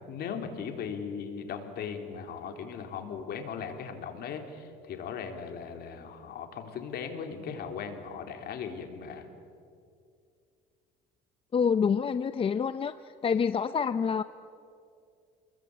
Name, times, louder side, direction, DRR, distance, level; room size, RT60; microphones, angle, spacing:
voice 1, 0.1-9.3, left 6 dB, 55° left, 4 dB, 3.8 m, -38 dB
voice 2, 11.5-12.9 13.2-14.2, left 6 dB, 30° left, 11 dB, 0.7 m, -27 dB
29.0 x 22.0 x 8.7 m, 2.4 s
cardioid pair, 120°, 19 cm